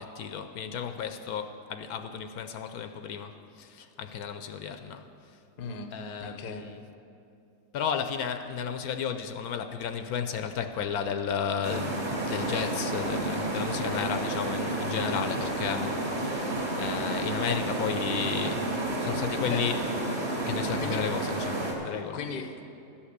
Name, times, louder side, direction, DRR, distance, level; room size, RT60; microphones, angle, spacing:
voice 1, 0.0-5.1 5.9-6.8 7.7-19.8 20.5-22.2, left 7 dB, 75° left, 8 dB, 1.1 m, -33 dB
voice 2, 5.6-5.9 6.2-6.7 19.5-19.6 20.8-21.0 22.1-22.7, left 5 dB, 45° left, 6 dB, 0.8 m, -37 dB
sound 1, 11.6-21.7, right 2 dB, 40° right, 2.1 m, -31 dB
13.0 x 5.8 x 8.1 m, 2.7 s
omnidirectional pair, 1.6 m